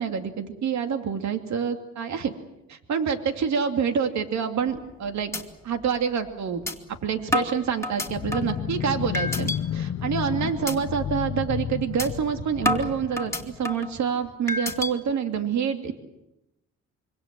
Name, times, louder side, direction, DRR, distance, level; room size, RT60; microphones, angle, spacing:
voice 1, 0.0-2.3 2.7-5.3 5.6-6.7 7.0-16.0, right 7 dB, 65° right, 6 dB, 2.5 m, -27 dB
sound 1, 4.7-5.0 5.3-5.4 5.8-5.9 6.7-6.8 7.3-8.6 9.1-9.6 10.0-10.2 10.7-10.8 11.2-11.4 12.0-12.1 12.6-13.9 14.5-14.9, left 2 dB, 10° left, 2.6 m, -28 dB
sound 2, 8.0-14.0, left 9 dB, 50° left, 0.9 m, -31 dB
26.0 x 24.0 x 7.5 m, 0.90 s
cardioid pair, 90°, 30 cm